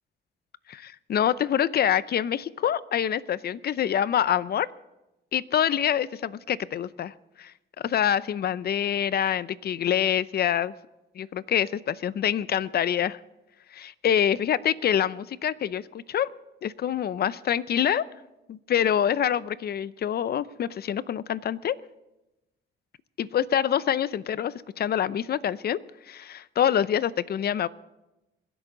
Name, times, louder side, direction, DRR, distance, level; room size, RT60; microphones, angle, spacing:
voice 1, 0.7-4.7 5.3-7.5 7.8-10.7 11.1-13.2 13.7-16.3 16.6-18.1 18.5-21.8 23.2-25.8 26.1-27.7, left 9 dB, 50° left, 17 dB, 0.6 m, -26 dB
26.0 x 11.0 x 3.9 m, 0.97 s
cardioid pair, 90°, 20 cm